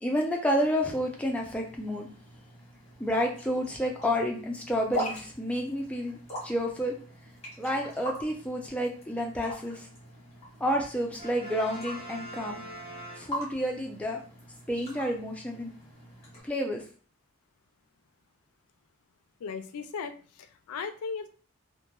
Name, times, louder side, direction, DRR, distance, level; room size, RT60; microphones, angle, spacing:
voice 1, 0.0-2.1 3.0-6.2 6.4-6.9 7.6-9.9 10.6-12.6 13.2-14.2 14.7-15.7 16.4-16.8, equal, 5° left, 0 dB, 0.3 m, -30 dB
sound 1, 0.8-16.4, equal, 30° left, 1.0 m, -43 dB
Brass instrument, 11.2-13.8, right 1 dB, 25° right, 0.8 m, -43 dB
voice 2, 19.4-21.3, left 5 dB, 90° left, 8 dB, 0.3 m, -37 dB
2.9 x 2.1 x 2.2 m, 0.41 s
head